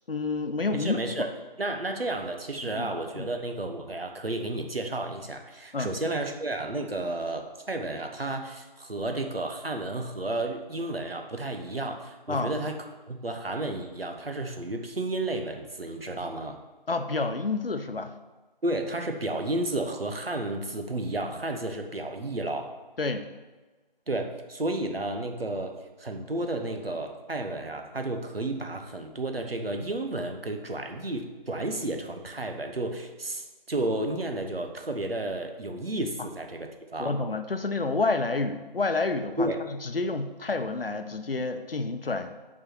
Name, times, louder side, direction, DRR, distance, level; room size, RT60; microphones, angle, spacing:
voice 1, 0.1-1.3 2.6-3.3 5.7-5.9 12.3-12.5 16.9-18.1 23.0-23.3 37.0-39.5 39.8-42.3, left 3 dB, 80° left, 8 dB, 0.8 m, -29 dB
voice 2, 0.7-1.3 1.6-12.8 13.1-16.6 18.6-22.7 24.1-25.7 26.0-37.1 39.4-39.6, right 2 dB, 85° right, 4 dB, 1.2 m, -32 dB
6.2 x 4.7 x 5.9 m, 1.3 s
figure-of-eight pair, 170°, 29 cm